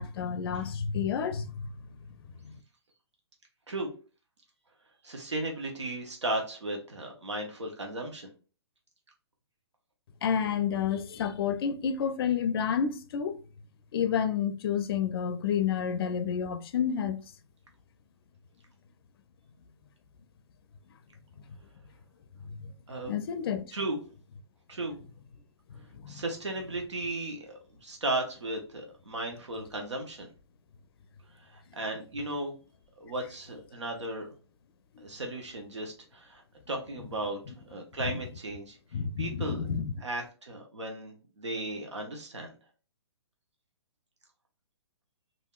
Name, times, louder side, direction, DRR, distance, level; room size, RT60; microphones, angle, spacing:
voice 1, 0.0-1.5 10.2-13.4 13.9-17.2 23.1-23.6 25.9-26.2 35.0-35.1 38.0-38.2 38.9-39.9, left 7 dB, 55° left, 0.4 m, -29 dB
voice 2, 5.0-8.3 22.9-23.1 23.7-24.0 24.7-25.0 26.1-30.3 31.4-32.6 33.0-34.3 35.0-37.4 37.6-38.8 39.2-39.7 40.0-42.5, right 2 dB, 85° right, 0.8 m, -35 dB
3.4 x 2.6 x 2.3 m
hypercardioid pair, 130°, 14 cm